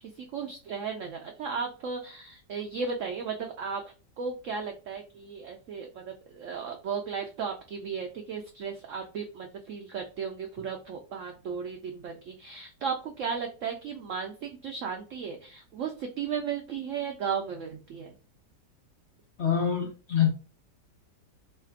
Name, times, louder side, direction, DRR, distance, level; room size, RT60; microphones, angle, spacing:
voice 1, 0.2-3.8 4.2-18.1, right 6 dB, 90° right, 3 dB, 0.6 m, -35 dB
voice 2, 19.4-20.3, left 8 dB, 55° left, 0 dB, 0.7 m, -25 dB
3.2 x 2.4 x 4.3 m, 0.36 s
omnidirectional pair, 1.9 m